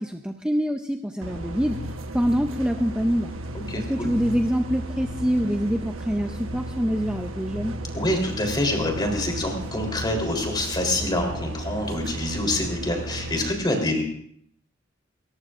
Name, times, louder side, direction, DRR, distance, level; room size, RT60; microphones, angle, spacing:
voice 1, 0.0-1.8 2.1-3.3 3.7-7.7, equal, 5° right, 4 dB, 0.6 m, -25 dB
sound 1, 1.2-13.5, right 1 dB, 90° right, 1.2 m, -34 dB
voice 2, 3.5-4.1 7.9-14.0, left 1 dB, 20° left, 2 dB, 3.6 m, -26 dB
29.5 x 14.0 x 2.5 m, 0.65 s
head